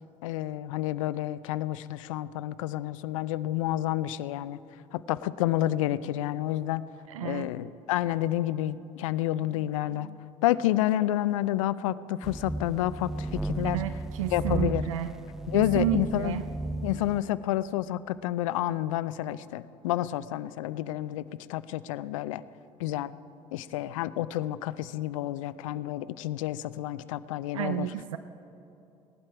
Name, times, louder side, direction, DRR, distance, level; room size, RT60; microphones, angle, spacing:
voice 1, 0.2-4.6 4.9-6.9 7.2-10.1 10.4-13.8 14.3-14.8 15.5-16.4 16.8-21.2 21.5-22.4 22.8-23.1 23.5-27.9, left 14 dB, 80° left, 17 dB, 0.4 m, -29 dB
voice 2, 7.1-7.5 9.4-10.2 13.7-15.1 15.5-16.4 27.5-28.2, right 13 dB, 85° right, 11 dB, 0.4 m, -32 dB
sound 1, 12.2-17.2, right 2 dB, 5° right, 0.4 m, -34 dB
18.5 x 11.5 x 4.8 m, 2.9 s
hypercardioid pair, 60°, 17 cm